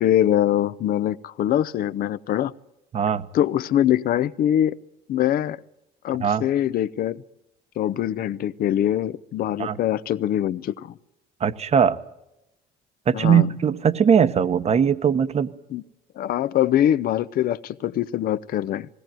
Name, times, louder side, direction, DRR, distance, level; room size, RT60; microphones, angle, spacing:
voice 1, 0.0-2.5 3.3-4.7 5.1-5.6 6.0-7.2 7.8-10.9 13.1-13.5 15.7-15.8 16.2-18.9, left 11 dB, 60° left, 16 dB, 0.7 m, -23 dB
voice 2, 2.9-3.3 6.2-6.4 9.6-9.8 11.4-12.0 13.1-15.5, right 7 dB, 40° right, 13 dB, 1.0 m, -20 dB
20.0 x 17.5 x 9.0 m, 0.90 s
cardioid pair, 110°, 17 cm